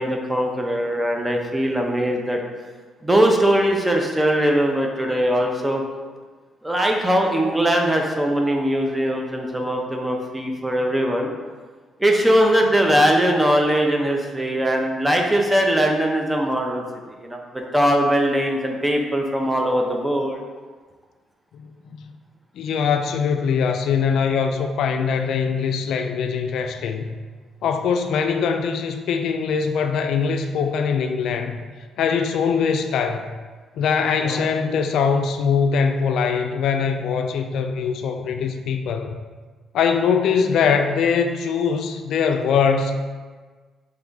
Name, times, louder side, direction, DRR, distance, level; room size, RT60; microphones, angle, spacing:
voice 1, 0.0-2.4 3.0-5.8 6.6-11.3 12.0-16.8 17.2-17.4 17.7-20.4 34.2-34.5, equal, 10° right, 1 dB, 0.6 m, -20 dB
voice 2, 21.5-22.0 22.5-27.2 27.6-31.6 32.0-33.4 33.8-39.2 39.7-43.0, left 6 dB, 75° left, 6 dB, 0.3 m, -22 dB
3.5 x 3.3 x 3.9 m, 1.4 s
cardioid pair, 90°, 0 cm